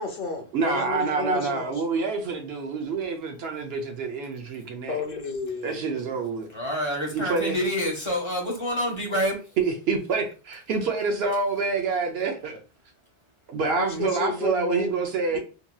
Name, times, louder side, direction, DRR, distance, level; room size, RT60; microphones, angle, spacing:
voice 1, 0.0-1.8 4.9-6.0 13.6-14.9 15.3-15.4, left 4 dB, 60° left, 0.7 m, -31 dB
voice 2, 0.5-5.0 5.6-6.5 7.1-7.6 9.6-12.6 13.5-15.4, right 4 dB, 70° right, 0.8 m, -27 dB
voice 3, 6.5-9.4, equal, 30° left, 0.8 m, -27 dB
2.9 x 2.6 x 2.2 m
omnidirectional pair, 1.2 m